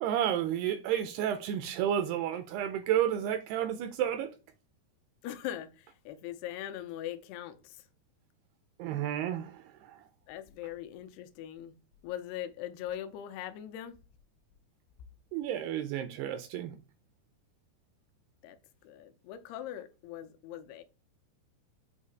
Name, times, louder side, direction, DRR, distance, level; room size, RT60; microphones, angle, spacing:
voice 1, 0.0-4.4 8.8-10.1 15.3-16.8, right 10 dB, 85° right, 2.4 m, -31 dB
voice 2, 5.2-7.8 10.3-11.7 12.0-14.0 18.4-18.6 18.8-20.8, left 11 dB, 85° left, 2.5 m, -41 dB
8.2 x 2.8 x 4.5 m
omnidirectional pair, 4.9 m